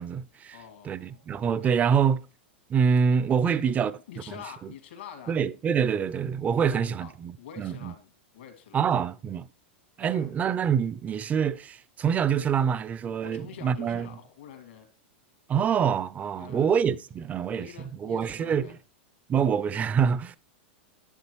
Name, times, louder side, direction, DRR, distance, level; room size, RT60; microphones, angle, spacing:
voice 1, 0.0-0.6 0.8-2.2 2.7-4.2 5.3-7.9 8.7-9.5 10.0-14.1 15.5-17.7 18.0-18.8 19.3-20.4, right 7 dB, 25° right, 0.5 m, -26 dB
voice 2, 0.5-1.3 1.6-2.0 3.4-5.3 6.6-7.1 7.4-8.1 8.3-8.9 10.0-10.3 13.2-14.9 16.4-16.9 17.5-18.8, left 8 dB, 75° left, 2.4 m, -46 dB
11.0 x 7.5 x 3.1 m
hypercardioid pair, 105°, 6 cm